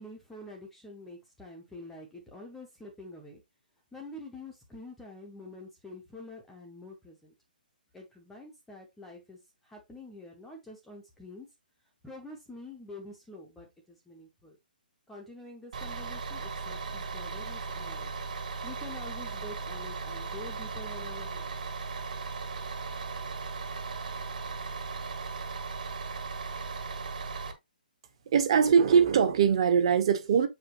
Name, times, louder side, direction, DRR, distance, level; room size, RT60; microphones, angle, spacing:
voice 1, 0.0-3.4 3.9-7.3 7.9-11.5 12.0-14.6 15.1-18.1 18.6-21.6, left 2 dB, 5° left, 0.7 m, -47 dB
Bus, 15.7-27.5, right 4 dB, 55° right, 1.8 m, -37 dB
voice 2, 28.3-30.5, right 7 dB, 35° right, 1.1 m, -22 dB
7.5 x 4.9 x 3.0 m
hypercardioid pair, 180°, 5 cm